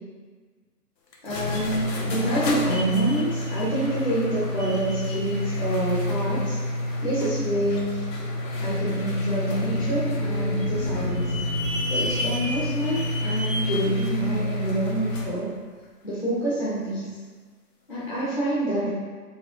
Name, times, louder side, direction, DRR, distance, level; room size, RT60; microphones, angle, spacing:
sound 1, 1.1-15.4, left 1 dB, 90° left, 0.9 m, -28 dB
voice 1, 1.2-6.6 7.0-8.0 8.6-11.3 11.9-15.5 16.0-17.1 17.9-18.9, right 1 dB, 35° left, -11 dB, 0.7 m, -27 dB
sound 2, 9.6-15.3, equal, 55° right, 1.2 m, -37 dB
4.1 x 3.0 x 2.9 m, 1.5 s
hypercardioid pair, 175°, 48 cm